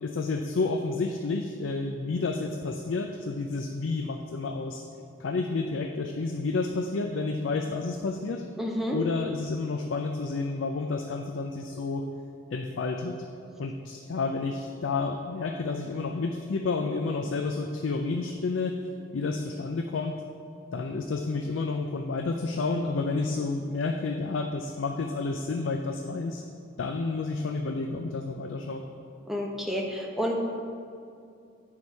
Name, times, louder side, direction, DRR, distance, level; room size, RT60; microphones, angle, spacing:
voice 1, 0.0-4.8 5.2-8.4 8.9-12.1 12.5-13.2 13.6-18.8 19.1-20.2 20.7-26.4 26.8-28.8, left 3 dB, 75° left, 4 dB, 0.4 m, -30 dB
voice 2, 8.6-9.0 29.3-30.4, equal, ahead, -1 dB, 0.8 m, -30 dB
8.6 x 4.7 x 5.3 m, 2.5 s
head